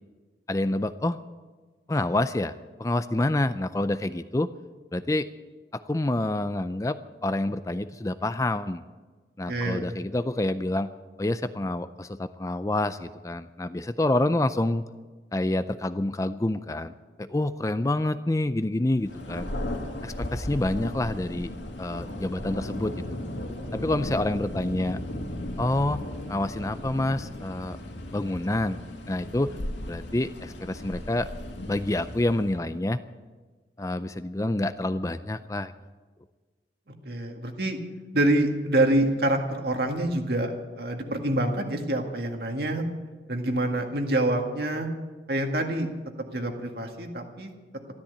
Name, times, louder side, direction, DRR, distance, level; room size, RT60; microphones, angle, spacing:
voice 1, 0.5-1.2 1.9-4.5 4.9-5.3 5.7-7.0 7.2-8.8 9.4-10.9 11.2-14.8 15.3-16.9 17.2-19.5 20.0-21.5 21.8-22.9 23.7-25.0 25.6-26.0 26.3-27.8 28.1-28.8 29.1-29.5 29.9-31.3 31.7-33.0 33.8-35.7, left 1 dB, 20° left, 12 dB, 0.4 m, -27 dB
voice 2, 9.5-9.9 37.0-37.8 38.1-42.8 43.3-44.9 45.3-45.9 46.2-47.5, right 1 dB, 60° right, 3 dB, 2.0 m, -26 dB
Thunder, 19.0-32.7, left 1 dB, 90° left, 2.2 m, -36 dB
13.5 x 13.0 x 8.2 m, 1.3 s
head